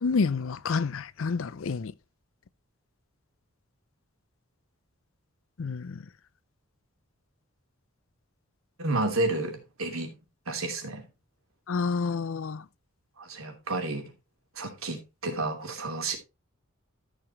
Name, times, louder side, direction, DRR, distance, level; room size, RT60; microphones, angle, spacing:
voice 1, 0.0-1.9 5.6-5.9 11.7-12.6, left 4 dB, 65° left, 0.5 m, -28 dB
voice 2, 8.8-10.1 10.5-11.0 13.2-14.1 14.5-16.2, right 2 dB, 80° right, 3.0 m, -31 dB
13.0 x 6.9 x 3.0 m
head